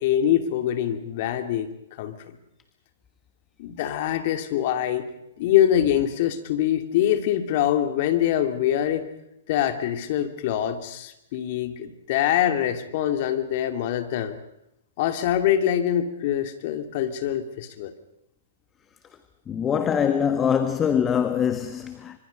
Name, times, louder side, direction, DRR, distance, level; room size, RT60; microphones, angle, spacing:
voice 1, 0.0-1.7 2.0-2.1 3.6-5.0 5.4-9.1 9.5-14.4 15.0-17.9, left 11 dB, 50° left, 2.6 m, -24 dB
voice 2, 19.5-22.2, left 7 dB, 20° left, 1.3 m, -23 dB
26.0 x 25.0 x 5.4 m
hypercardioid pair, 120°, 0 cm